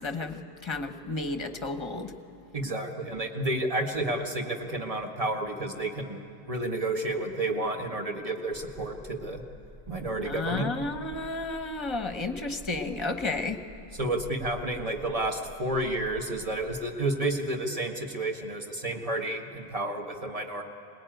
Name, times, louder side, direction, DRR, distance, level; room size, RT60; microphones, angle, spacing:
voice 1, 0.0-2.1 10.2-13.6, left 3 dB, 25° left, 7 dB, 1.1 m, -32 dB
voice 2, 2.5-6.2 6.5-9.4 9.9-10.7 14.0-20.6, right 2 dB, 30° right, 2 dB, 1.7 m, -31 dB
sound 1, 8.5-16.8, left 2 dB, 70° right, 4.1 m, -49 dB
21.5 x 20.0 x 9.2 m, 2.8 s
omnidirectional pair, 1.1 m